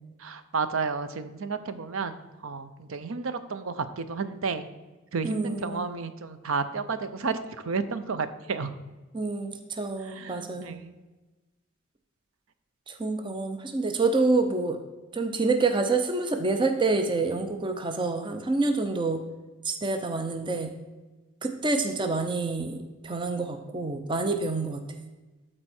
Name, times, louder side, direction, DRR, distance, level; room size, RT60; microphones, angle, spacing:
voice 1, 0.2-4.7 5.1-7.4 7.6-8.7 10.0-10.9, right 4 dB, 75° right, 11 dB, 0.6 m, -32 dB
voice 2, 5.2-5.9 9.1-10.8 12.9-14.8 15.1-19.2 19.6-20.7 21.4-24.8, right 3 dB, 20° right, 6 dB, 0.5 m, -27 dB
12.0 x 4.4 x 4.3 m, 1.2 s
head